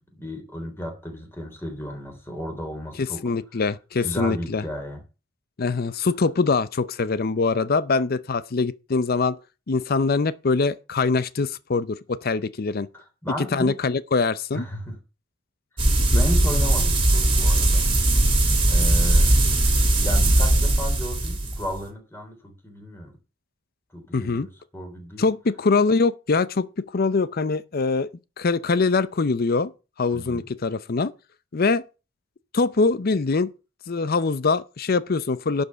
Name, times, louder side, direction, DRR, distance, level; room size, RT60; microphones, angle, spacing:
voice 1, 0.2-3.2 3.5-3.7 4.0-5.0 12.9-13.7 14.5-15.0 15.7-15.8 16.1-17.9 18.7-19.3 20.0-23.1 23.9-25.3 30.1-30.5, equal, 15° left, 3.5 m, -34 dB
voice 2, 3.2-4.6 5.6-9.4 9.7-12.9 13.5-14.6 16.1-16.3 24.1-24.5 25.2-28.1 28.4-29.7 30.0-31.1 31.5-31.8 32.5-33.5 33.9-35.6, left 4 dB, 50° left, 0.6 m, -23 dB
sound 1, 15.8-21.8, right 1 dB, 30° right, 2.5 m, -19 dB
11.5 x 5.4 x 6.7 m
head